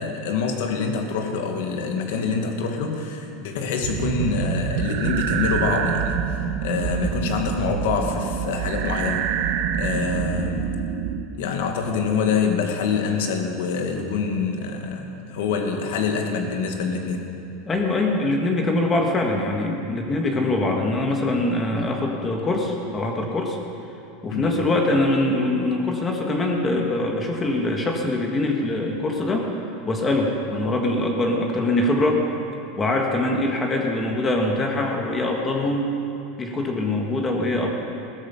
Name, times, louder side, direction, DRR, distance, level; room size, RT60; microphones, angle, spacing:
voice 1, 0.0-6.2 6.6-9.3 9.7-10.6 11.3-17.3 24.3-24.6, left 5 dB, 80° left, 3 dB, 2.0 m, -25 dB
sound 1, 3.8-11.2, right 8 dB, 60° right, 1.1 m, -26 dB
voice 2, 17.6-23.6 24.2-29.5 29.8-32.2 32.7-35.9 36.4-37.7, left 2 dB, 20° left, 1 dB, 1.6 m, -23 dB
16.0 x 13.0 x 5.7 m, 2.7 s
supercardioid pair, 145°, 0 cm